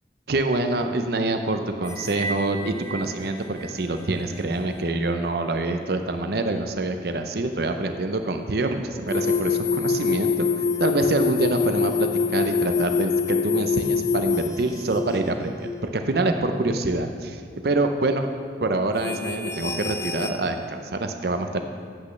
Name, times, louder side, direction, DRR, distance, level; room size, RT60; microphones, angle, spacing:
voice 1, 0.3-10.5 10.8-18.3 18.6-21.6, right 2 dB, 60° right, 6 dB, 0.6 m, -26 dB
sound 1, 1.8-2.4 2.8-3.0 3.6-3.7 9.1-15.2 15.6-15.9 16.3-16.5 17.0-17.1 19.0-20.3, left 5 dB, 15° left, 0.5 m, -25 dB
13.5 x 8.3 x 3.2 m, 2.1 s
head